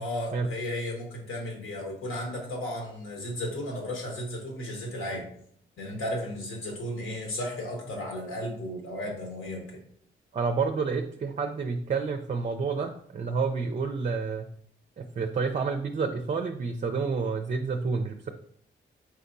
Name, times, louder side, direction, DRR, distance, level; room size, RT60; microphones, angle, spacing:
voice 1, 0.0-5.3 5.8-9.7, left 1 dB, 75° left, 0 dB, 1.3 m, -34 dB
voice 2, 10.3-14.5 15.0-18.3, right 4 dB, 35° right, 6 dB, 0.4 m, -29 dB
4.6 x 3.5 x 2.6 m, 0.65 s
supercardioid pair, 55°, 21 cm